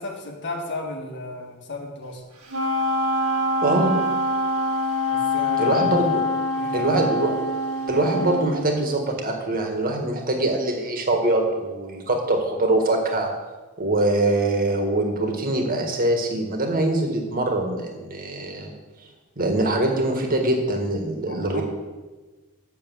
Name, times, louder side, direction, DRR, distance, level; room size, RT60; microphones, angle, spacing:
voice 1, 0.0-2.2 5.1-5.9 6.5-7.1 21.3-21.6, left 2 dB, 55° left, 3 dB, 1.5 m, -34 dB
Wind instrument woodwind instrument, 2.5-8.6, left 1 dB, 75° right, 1.9 m, -24 dB
voice 2, 3.6-3.9 5.6-6.2 6.7-7.3 7.9-13.3 13.8-18.7 19.4-21.6, right 2 dB, 40° right, 2 dB, 1.7 m, -23 dB
7.4 x 7.0 x 7.0 m, 1.3 s
head